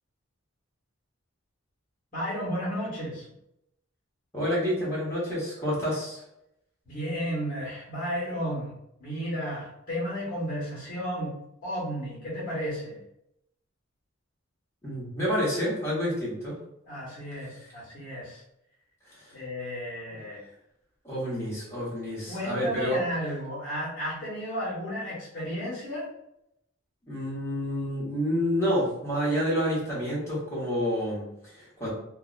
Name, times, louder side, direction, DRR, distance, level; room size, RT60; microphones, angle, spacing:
voice 1, 2.1-3.3 6.8-8.7 9.0-11.4 11.6-13.0 16.9-18.4 19.3-20.4 22.3-26.1, equal, 40° left, -8 dB, 1.0 m, -33 dB
voice 2, 4.3-6.2 14.8-16.6 19.1-19.4 20.1-20.2 21.0-23.0 27.1-31.9, equal, 15° left, -8 dB, 1.1 m, -29 dB
2.5 x 2.2 x 2.4 m, 0.81 s
head